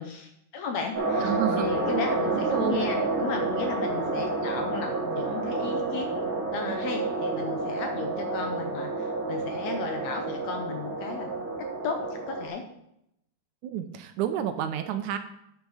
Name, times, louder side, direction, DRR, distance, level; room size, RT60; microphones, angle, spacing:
voice 1, 0.0-6.1 6.5-11.3 11.8-12.6, left 5 dB, 75° left, 5 dB, 1.7 m, -35 dB
sound 1, 0.9-12.5, right 3 dB, 30° right, 2.2 m, -29 dB
voice 2, 1.2-1.8 2.3-2.9 6.2-6.3 13.6-15.2, right 9 dB, 75° right, 8 dB, 1.9 m, -30 dB
9.4 x 6.6 x 4.8 m, 0.78 s
omnidirectional pair, 3.8 m